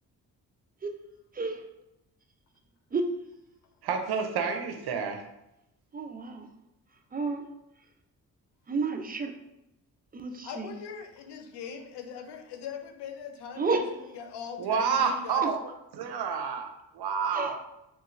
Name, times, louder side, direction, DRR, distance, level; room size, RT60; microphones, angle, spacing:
voice 1, 3.8-5.2 14.6-17.6, right 6 dB, 70° right, 5 dB, 0.6 m, -29 dB
voice 2, 5.9-6.5 7.1-7.4 8.7-9.3 10.1-10.7 13.6-13.9 17.3-17.6, right 3 dB, 25° right, 5 dB, 0.4 m, -30 dB
voice 3, 10.4-13.8 14.1-15.5, left 7 dB, 80° left, 5 dB, 0.5 m, -40 dB
3.1 x 2.3 x 3.1 m, 0.88 s
supercardioid pair, 55°, 41 cm